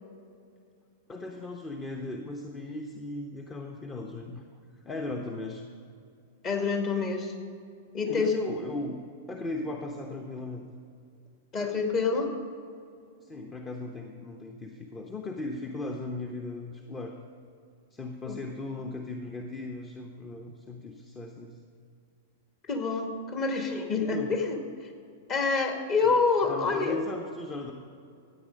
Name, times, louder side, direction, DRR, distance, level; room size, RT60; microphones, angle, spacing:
voice 1, 1.1-4.4 4.7-5.6 8.0-10.7 13.2-17.2 17.9-21.6 24.0-24.3 26.0-26.1 26.5-27.7, left 2 dB, 20° left, 3 dB, 0.9 m, -37 dB
voice 2, 6.4-7.3 7.9-8.3 11.5-12.3 18.3-18.4 22.6-24.9 25.3-27.0, left 4 dB, 35° left, 4 dB, 1.8 m, -27 dB
14.0 x 8.9 x 5.2 m, 2.4 s
hypercardioid pair, 105°, 0 cm